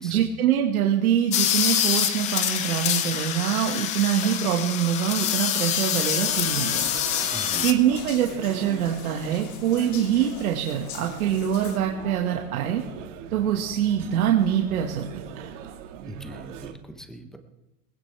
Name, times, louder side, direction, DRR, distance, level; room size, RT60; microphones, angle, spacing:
voice 1, 0.0-12.8 13.3-15.1 15.4-15.5, right 9 dB, 80° right, 1 dB, 1.8 m, -24 dB
sound 1, 1.3-7.7, left 10 dB, 15° left, 0.5 m, -25 dB
sound 2, 6.1-16.7, right 8 dB, 55° right, 1.8 m, -41 dB
sound 3, 6.5-11.8, left 7 dB, 85° left, 2.8 m, -44 dB
voice 2, 7.3-7.7 16.1-17.4, right 1 dB, ahead, 7 dB, 0.9 m, -40 dB
20.0 x 16.5 x 3.4 m, 0.97 s
supercardioid pair, 155°, 43 cm